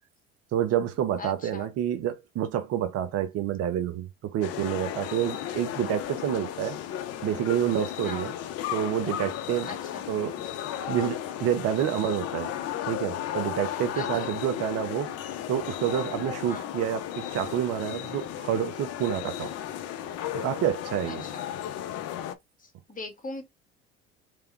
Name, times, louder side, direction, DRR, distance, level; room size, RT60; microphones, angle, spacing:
voice 1, 0.5-6.8 7.2-8.3 8.7-9.7 10.1-10.4 10.9-12.5 12.9-15.1 15.5-19.5 20.3-21.3, right 10 dB, 55° right, 0.9 m, -28 dB
voice 2, 1.2-1.7 5.5-5.6 8.0-8.3 9.6-10.0 13.9-14.3 16.5-16.7 21.1-21.4 22.9-23.4, left 3 dB, 25° left, 2.0 m, -39 dB
sound 1, 4.4-22.3, left 11 dB, 55° left, 0.7 m, -35 dB
3.5 x 3.4 x 3.2 m
hypercardioid pair, 65°, 30 cm